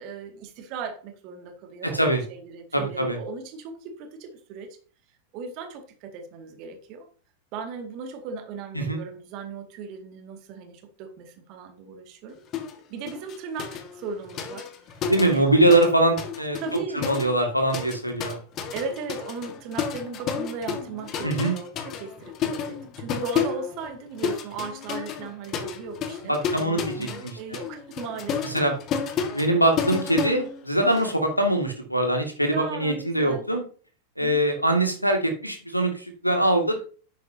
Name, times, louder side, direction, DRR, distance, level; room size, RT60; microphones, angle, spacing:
voice 1, 0.0-4.7 5.3-7.1 7.5-12.4 12.9-14.7 15.3-15.4 16.6-17.1 18.7-28.6 30.8-31.0 32.4-33.4 34.2-34.5, right 4 dB, 40° right, 5 dB, 2.1 m, -37 dB
voice 2, 1.8-2.2 2.7-3.2 8.7-9.0 15.1-18.4 21.2-21.5 26.3-27.6 28.4-28.8 29.2-33.6 34.2-36.8, right 1 dB, 90° left, 4 dB, 2.1 m, -23 dB
sound 1, 12.5-12.8 13.1-15.9 16.2-31.1, left 7 dB, 35° left, 1.5 m, -32 dB
10.5 x 8.1 x 2.8 m, 0.40 s
figure-of-eight pair, 90°, 0 cm